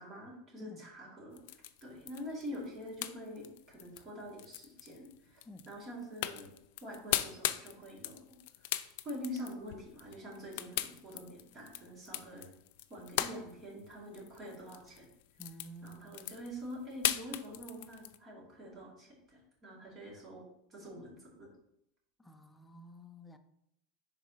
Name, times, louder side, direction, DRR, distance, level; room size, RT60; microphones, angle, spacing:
voice 1, 0.0-1.4 1.8-6.5 6.8-8.3 9.0-12.5 12.9-15.1 15.8-20.4 20.7-21.5, equal, 25° right, -3 dB, 2.2 m, -45 dB
sound 1, 1.3-18.2, left 14 dB, 65° left, 0.4 m, -39 dB
voice 2, 15.4-16.2 22.2-23.4, right 1 dB, 5° left, 6 dB, 0.5 m, -51 dB
10.5 x 4.0 x 2.8 m, 0.78 s
supercardioid pair, 160°, 0 cm